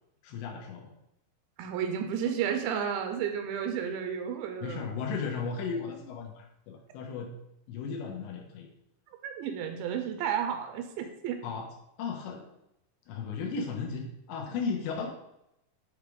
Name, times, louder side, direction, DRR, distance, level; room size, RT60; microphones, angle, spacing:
voice 1, 0.2-0.9 4.6-7.3 7.7-8.7 11.4-11.7 12.0-12.4 13.1-15.1, left 5 dB, 80° left, 1 dB, 3.1 m, -35 dB
voice 2, 1.6-4.8 9.2-11.4, right 8 dB, 80° right, 6 dB, 2.8 m, -32 dB
8.1 x 3.3 x 4.9 m, 0.82 s
omnidirectional pair, 5.3 m